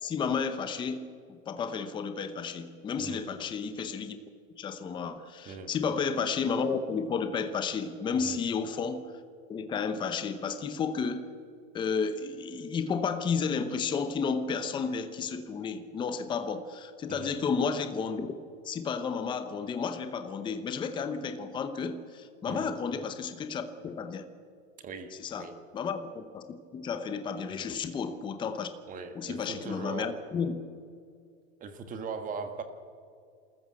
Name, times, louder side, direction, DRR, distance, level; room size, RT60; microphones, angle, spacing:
voice 1, 0.0-4.2 4.6-9.0 9.5-11.2 11.7-18.3 18.6-24.3 25.2-25.5 25.7-26.4 26.7-28.7 29.1-30.5, left 5 dB, 10° left, 9 dB, 0.8 m, -32 dB
voice 2, 24.8-25.6 27.5-27.7 28.9-30.1 30.4-30.6 31.6-32.6, right 5 dB, 20° right, 8 dB, 1.6 m, -40 dB
28.0 x 14.0 x 7.6 m, 2.3 s
supercardioid pair, 155°, 38 cm